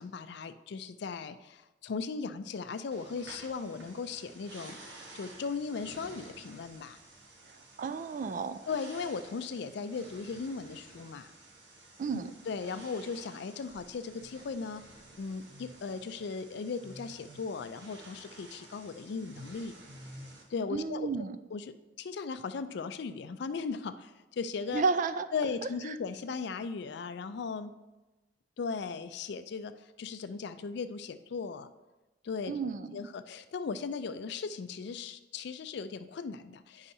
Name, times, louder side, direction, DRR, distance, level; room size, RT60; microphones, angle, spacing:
voice 1, 0.0-4.7 5.1-7.0 8.7-11.3 12.1-14.8 15.2-19.7 20.5-21.1 21.5-24.8 25.3-27.7 28.6-31.7 32.2-32.6 32.9-36.9, left 5 dB, 65° left, 11 dB, 0.4 m, -37 dB
sound 1, 2.9-20.4, right 1 dB, 70° right, 1.1 m, -52 dB
voice 2, 7.8-8.6 12.0-12.3 20.7-21.4 24.7-25.3 32.5-33.0, right 4 dB, 45° right, 12 dB, 0.3 m, -31 dB
9.6 x 5.5 x 2.7 m, 1.1 s
head